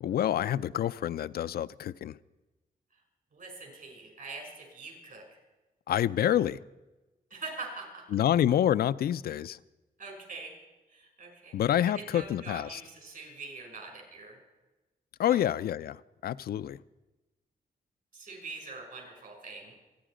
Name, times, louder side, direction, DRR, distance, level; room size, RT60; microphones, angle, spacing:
voice 1, 0.0-2.2 5.9-6.6 8.1-9.6 11.5-12.8 15.2-16.8, left 11 dB, 80° left, 0.4 m, -28 dB
voice 2, 3.3-5.2 7.3-8.0 10.0-10.5 10.9-14.4 15.3-15.5 18.1-19.7, right 3 dB, 65° right, 6.4 m, -44 dB
27.0 x 10.0 x 5.1 m
cardioid pair, 95°, 16 cm